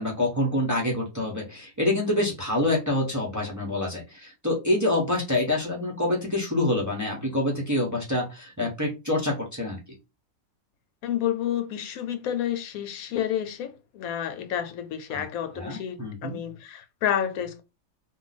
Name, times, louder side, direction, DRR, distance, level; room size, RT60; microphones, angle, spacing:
voice 1, 0.0-9.8 15.1-15.2 15.5-16.4, left 1 dB, 20° right, 0.6 m, -26 dB
voice 2, 11.0-17.6, left 10 dB, 90° left, 1.1 m, -30 dB
2.5 x 2.2 x 3.9 m
omnidirectional pair, 1.5 m